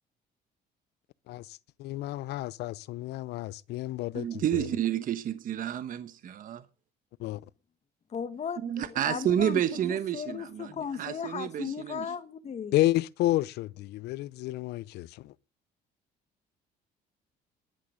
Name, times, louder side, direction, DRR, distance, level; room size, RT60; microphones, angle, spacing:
voice 1, 1.3-4.7 7.2-7.4 12.7-15.3, left 16 dB, 80° left, 0.6 m, -31 dB
voice 2, 4.1-6.6 8.6-12.1, right 10 dB, 55° right, 1.1 m, -30 dB
voice 3, 8.1-12.7, left 7 dB, 40° left, 1.7 m, -36 dB
11.5 x 11.5 x 6.6 m
cardioid pair, 110°, 17 cm